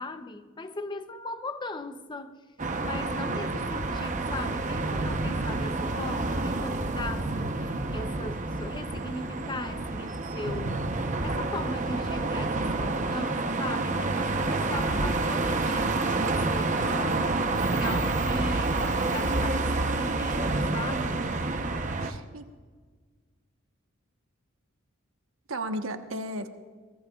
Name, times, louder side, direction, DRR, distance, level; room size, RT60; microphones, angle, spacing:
voice 1, 0.0-2.4 2.8-21.4, left 2 dB, 20° left, 0.7 m, -39 dB
sound 1, 2.6-22.1, right 2 dB, 35° right, 0.9 m, -28 dB
voice 2, 22.0-22.5 25.5-26.5, right 1 dB, 80° right, 1.2 m, -34 dB
23.5 x 18.0 x 2.4 m
head